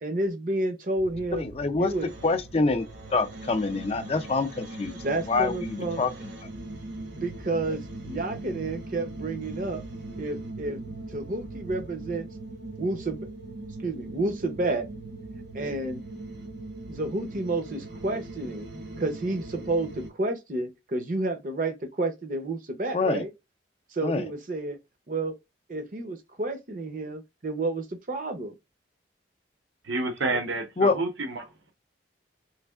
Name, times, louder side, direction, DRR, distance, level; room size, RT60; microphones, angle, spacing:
voice 1, 0.0-1.4 1.7-2.1 5.0-6.0 7.1-9.8 10.2-12.3 12.8-13.3 13.8-14.9 15.5-16.0 16.9-18.7 19.0-23.3 23.9-24.8 25.1-25.3 25.7-28.5, right 2 dB, 45° right, 0.7 m, -30 dB
sound 1, 1.0-20.1, right 2 dB, 70° right, 1.1 m, -40 dB
voice 2, 1.4-1.9 2.2-2.9 3.1-5.0 5.3-6.1 22.9-23.2 24.0-24.2 30.8-31.0, left 3 dB, 30° left, 0.4 m, -25 dB
voice 3, 29.8-31.7, right 2 dB, 90° right, 0.9 m, -29 dB
3.4 x 3.2 x 2.3 m
head